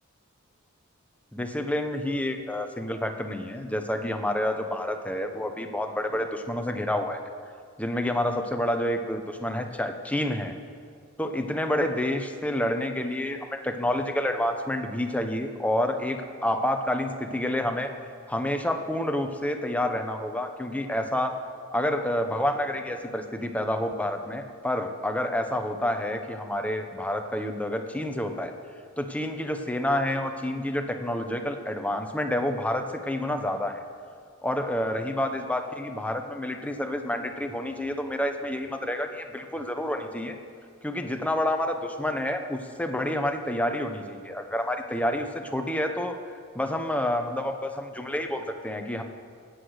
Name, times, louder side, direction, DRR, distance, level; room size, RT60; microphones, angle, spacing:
voice 1, 1.3-7.2 7.8-10.5 11.2-13.4 13.6-17.9 18.3-21.3 21.7-28.5 29.0-33.8 34.4-40.4 40.8-46.2 46.5-49.0, left 1 dB, 5° left, 5 dB, 0.9 m, -28 dB
18.5 x 8.0 x 6.5 m, 2.2 s
head